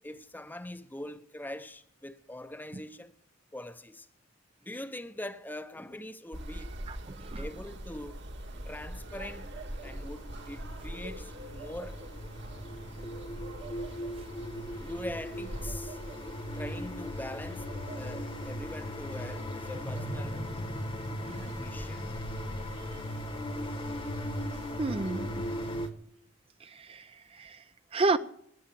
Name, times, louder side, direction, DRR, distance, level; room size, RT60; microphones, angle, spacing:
voice 1, 0.0-3.1 3.5-4.1 4.6-6.8 7.4-8.3 8.7-9.5 9.8-12.0 14.7-16.0 16.5-20.4 21.4-22.1, left 1 dB, 10° left, 0.7 m, -43 dB
sound 1, 6.3-25.9, right 1 dB, 60° right, 1.7 m, -44 dB
voice 2, 6.9-7.4 21.2-21.4 24.8-25.4 26.6-27.0 27.4-27.6 27.9-28.2, right 3 dB, 30° right, 0.5 m, -31 dB
sound 2, 7.7-7.8 8.4-25.9, equal, 25° left, 1.1 m, -38 dB
20.5 x 7.8 x 7.5 m
head